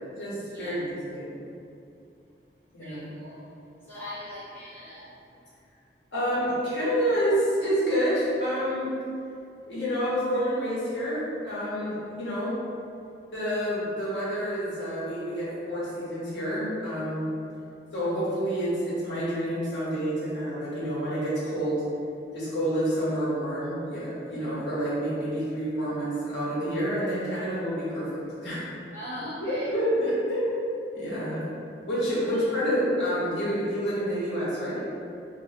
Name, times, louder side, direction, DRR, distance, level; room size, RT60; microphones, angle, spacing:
voice 1, 0.0-1.3 2.7-3.1 6.1-8.9 9.7-12.6 13.3-17.3 17.9-21.8 22.3-28.6 29.4-31.4 31.8-34.8, equal, 90° left, -9 dB, 1.2 m, -28 dB
voice 2, 2.8-3.4 3.9-5.1 24.3-24.4 28.9-29.7 32.3-32.4, left 1 dB, 15° left, -13 dB, 1.2 m, -40 dB
2.9 x 2.8 x 2.9 m, 2.5 s
head